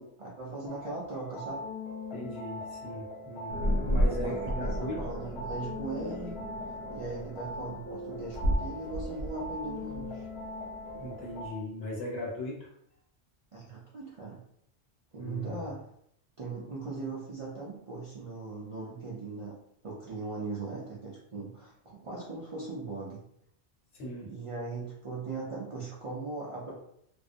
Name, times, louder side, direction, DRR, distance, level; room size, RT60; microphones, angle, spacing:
voice 1, 0.2-1.6 4.2-6.3 6.9-10.3 13.5-14.4 15.1-15.9 16.4-19.5 19.8-23.2 24.2-26.7, right 3 dB, 55° right, -6 dB, 0.3 m, -39 dB
sound 1, 0.7-11.5, left 2 dB, 50° left, 0.3 m, -41 dB
voice 2, 2.1-5.0 10.9-12.7 15.2-15.6 23.9-24.3, left 1 dB, 70° left, -3 dB, 1.0 m, -38 dB
sound 2, 3.5-11.5, equal, 85° right, 0.9 m, -34 dB
2.4 x 2.1 x 2.5 m, 0.73 s
omnidirectional pair, 1.1 m